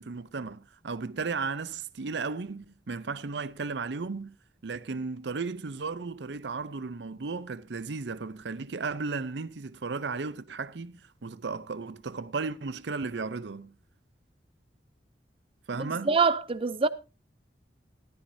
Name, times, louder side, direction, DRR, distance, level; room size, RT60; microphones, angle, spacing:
voice 1, 0.0-4.4 4.6-13.8 15.7-16.2, right 4 dB, 85° right, 0.6 m, -35 dB
voice 2, 15.8-16.9, right 4 dB, 30° right, 0.6 m, -25 dB
14.5 x 13.0 x 2.7 m
head